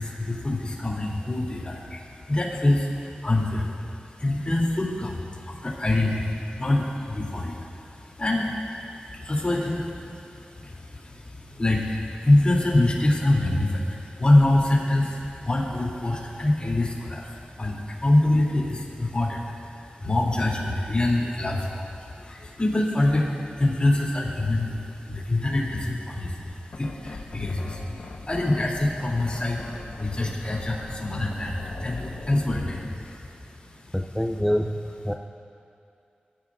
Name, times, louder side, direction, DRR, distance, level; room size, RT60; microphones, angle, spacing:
voice 1, 0.0-33.9, left 1 dB, 35° left, -3 dB, 3.2 m, -25 dB
sound 1, 26.4-33.0, left 3 dB, 75° left, 1.4 m, -39 dB
voice 2, 33.9-35.1, equal, 5° left, 2 dB, 0.5 m, -26 dB
24.5 x 14.0 x 2.6 m, 2.5 s
wide cardioid pair, 80°, 3 cm